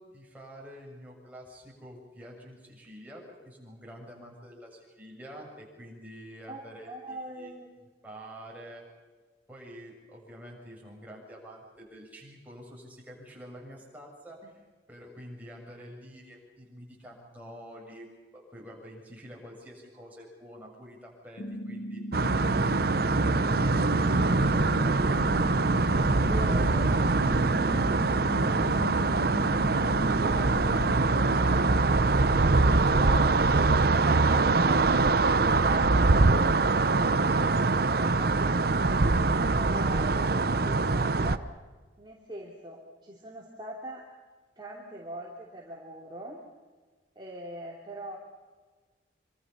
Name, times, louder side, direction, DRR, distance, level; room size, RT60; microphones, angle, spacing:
voice 1, 0.0-7.5 8.0-8.9 9.5-14.4 14.9-18.1 18.3-22.0 26.1-29.8, equal, 10° right, -2 dB, 7.0 m, -47 dB
voice 2, 6.5-7.7 14.4-14.5 26.2-26.7 30.1-32.1 32.5-38.8 39.3-41.4 42.0-44.0 44.6-46.4 47.1-48.2, right 1 dB, 25° right, -3 dB, 3.1 m, -41 dB
sound 1, 21.4-31.4, equal, 75° left, 2.3 m, -37 dB
sound 2, 22.1-41.4, right 3 dB, 60° right, 0.9 m, -23 dB
26.0 x 26.0 x 5.6 m, 1.4 s
head